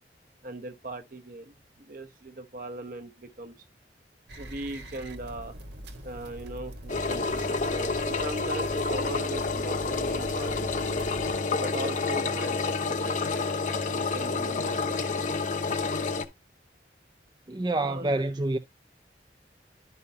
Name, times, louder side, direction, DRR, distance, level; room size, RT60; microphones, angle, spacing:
voice 1, 0.4-3.6 4.4-5.6 6.0-10.8 11.6-13.4 13.9-15.0 17.7-18.1, right 2 dB, 50° right, 0.9 m, -39 dB
sound 1, 4.3-11.4, equal, 85° right, 1.4 m, -43 dB
Engine, 6.9-16.2, left 3 dB, 45° left, 0.8 m, -29 dB
voice 2, 17.5-18.6, right 2 dB, 25° right, 0.4 m, -27 dB
11.0 x 5.5 x 2.7 m
head